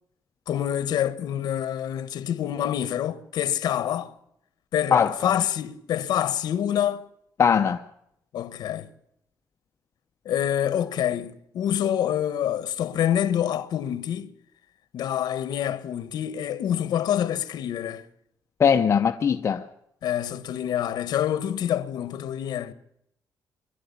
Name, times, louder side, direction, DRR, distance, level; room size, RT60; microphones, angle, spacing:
voice 1, 0.5-4.1 4.7-7.0 8.3-8.9 10.2-14.3 14.9-18.0 20.0-22.7, left 10 dB, 75° left, 1.3 m, -26 dB
voice 2, 4.9-5.3 7.4-7.8 18.6-19.6, left 7 dB, 40° left, 0.8 m, -20 dB
23.0 x 12.0 x 9.8 m
cardioid pair, 155°, 7 cm